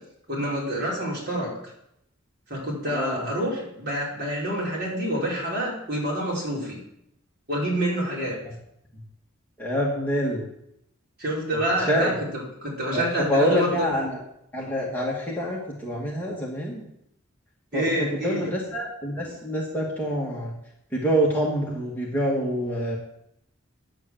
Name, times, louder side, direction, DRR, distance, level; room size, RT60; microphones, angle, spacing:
voice 1, 0.3-1.5 2.5-6.8 7.5-8.3 11.2-13.9 17.7-18.5, right 1 dB, 45° right, -5 dB, 4.9 m, -27 dB
voice 2, 2.8-3.3 9.6-10.4 11.5-11.6 11.9-12.1 12.9-14.2 14.5-16.8 17.7-20.5 20.9-23.0, equal, 10° left, -4 dB, 2.1 m, -26 dB
10.0 x 8.1 x 7.5 m, 0.77 s
head